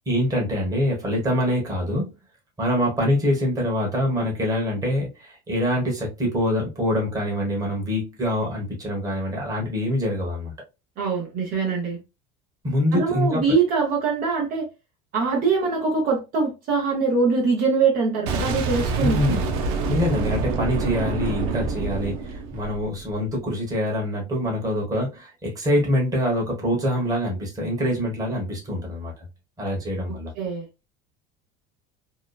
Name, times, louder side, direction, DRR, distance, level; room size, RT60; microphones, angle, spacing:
voice 1, 0.1-2.1 2.6-10.5 12.6-13.4 19.0-19.4 19.9-29.3 29.6-30.3, left 1 dB, 20° right, 1.2 m, -25 dB
voice 2, 11.0-12.0 12.9-14.7 15.1-19.4 30.4-30.6, right 4 dB, 45° right, 0.9 m, -23 dB
Boom, 18.3-23.1, right 4 dB, 80° right, 0.6 m, -26 dB
2.9 x 2.2 x 2.3 m
supercardioid pair, 135°, 20 cm